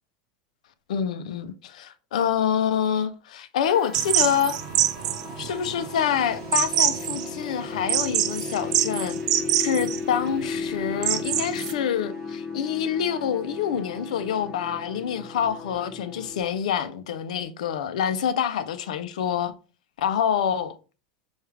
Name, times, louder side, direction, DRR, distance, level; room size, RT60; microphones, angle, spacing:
voice 1, 0.9-4.6 5.4-9.2 9.6-19.5 20.0-20.8, left 8 dB, 85° left, 0.5 m, -26 dB
sound 1, 3.6-16.4, left 5 dB, 35° left, 2.3 m, -35 dB
sound 2, 3.9-11.7, right 12 dB, 75° right, 0.4 m, -26 dB
4.6 x 2.4 x 3.2 m
supercardioid pair, 115°, 4 cm